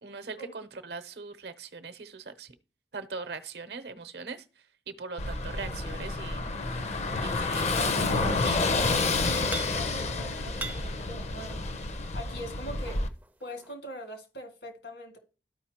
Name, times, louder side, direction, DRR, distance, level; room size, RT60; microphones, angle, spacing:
voice 1, 0.0-2.5 2.9-4.4 4.9-6.5 7.2-7.7, right 4 dB, 70° right, 0.7 m, -40 dB
Car passing by / Engine, 5.2-13.1, left 3 dB, 40° left, 0.6 m, -29 dB
voice 2, 7.5-11.6 12.1-13.0 13.4-15.2, equal, 70° left, 1.9 m, -42 dB
sound 1, 8.4-9.0 9.2-10.1 10.4-12.0 12.6-13.7, right 3 dB, 10° right, 0.4 m, -42 dB
13.0 x 5.0 x 2.9 m
head